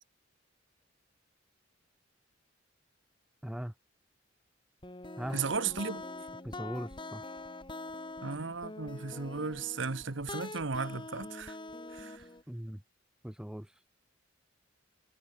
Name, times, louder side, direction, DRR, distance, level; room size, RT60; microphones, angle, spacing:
voice 1, 3.4-3.7 5.2-5.4 6.4-7.2 12.5-12.8 13.2-13.7, equal, 5° right, 0.5 m, -39 dB
sound 1, 4.8-12.4, left 2 dB, 25° left, 2.3 m, -44 dB
voice 2, 5.3-6.0 8.2-11.6 11.9-12.2, right 4 dB, 70° right, 1.2 m, -35 dB
head